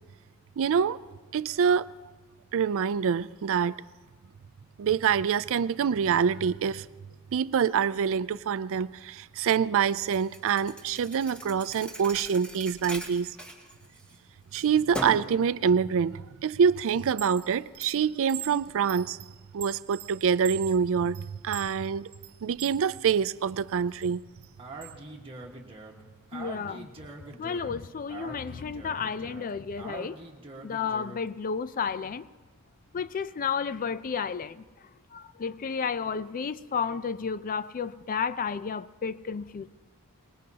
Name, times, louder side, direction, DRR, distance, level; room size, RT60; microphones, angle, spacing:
voice 1, 0.6-1.0 1.3-1.9 2.5-3.8 4.8-6.9 7.3-13.4 14.5-19.2 19.5-22.1 22.4-24.2, right 7 dB, 65° right, 0.4 m, -26 dB
Thump thud, 10.1-14.2 14.5-15.4, equal, 5° left, 1.7 m, -39 dB
Chime, 17.0-22.8 23.3-24.9, right 10 dB, 85° right, 1.0 m, -43 dB
Speech, 24.6-31.3, right 2 dB, 25° right, 1.5 m, -44 dB
voice 2, 26.3-26.9 27.4-30.2 30.6-32.3 32.9-34.6 35.1-39.7, left 6 dB, 40° left, 0.4 m, -32 dB
23.5 x 20.0 x 2.9 m
head